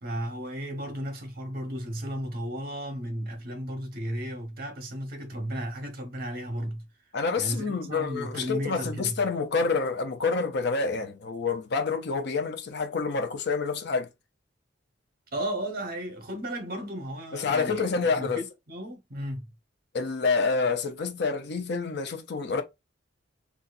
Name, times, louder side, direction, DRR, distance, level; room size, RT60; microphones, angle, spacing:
voice 1, 0.0-6.8 7.4-9.2 15.3-19.5, equal, 50° right, 1.3 m, -34 dB
voice 2, 7.1-14.1 17.3-18.4 19.9-22.6, left 4 dB, 60° left, 0.6 m, -28 dB
4.0 x 2.4 x 2.5 m
head